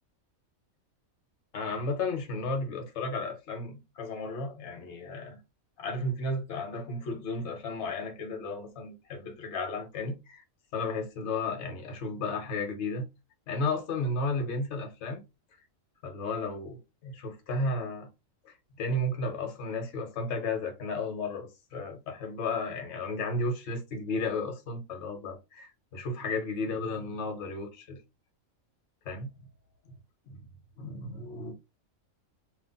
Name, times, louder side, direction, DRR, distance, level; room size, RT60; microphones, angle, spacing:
voice 1, 1.5-5.4 5.8-10.4 10.7-13.1 13.5-15.2 16.0-18.1 18.4-28.0 29.0-29.3 30.3-30.4 30.8-31.5, left 2 dB, 55° left, 1.1 m, -33 dB
2.6 x 2.0 x 3.7 m
omnidirectional pair, 1.5 m